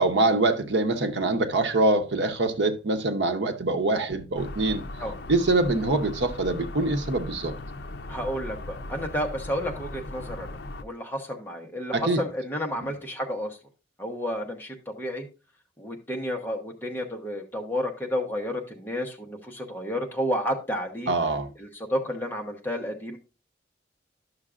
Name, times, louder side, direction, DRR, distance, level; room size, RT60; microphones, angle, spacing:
voice 1, 0.0-4.8 5.3-7.5 11.9-12.2 21.1-21.5, right 2 dB, 80° right, 0.8 m, -24 dB
sound 1, 4.4-10.8, left 1 dB, 70° left, 0.5 m, -38 dB
voice 2, 8.1-13.6 14.0-15.3 15.8-21.1 21.6-23.2, equal, 10° left, 1.0 m, -31 dB
11.0 x 6.5 x 2.4 m
head